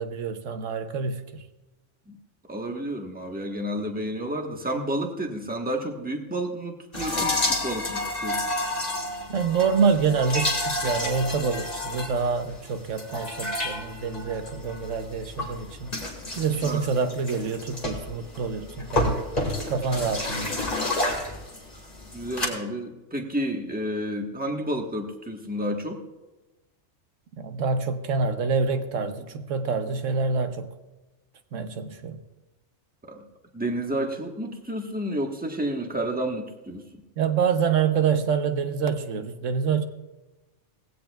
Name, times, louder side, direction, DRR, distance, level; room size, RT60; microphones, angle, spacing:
voice 1, 0.0-1.4 9.3-15.9 16.4-19.2 19.7-20.6 27.4-30.7 31.5-32.2 37.2-39.8, right 5 dB, 80° right, 8 dB, 1.2 m, -26 dB
voice 2, 2.5-8.4 16.6-16.9 22.1-26.0 33.0-33.2 33.5-37.0, right 1 dB, 5° right, 2 dB, 1.2 m, -31 dB
sound 1, 6.9-22.5, left 1 dB, 30° left, 2.2 m, -30 dB
18.5 x 16.0 x 2.3 m, 1.1 s
omnidirectional pair, 1.3 m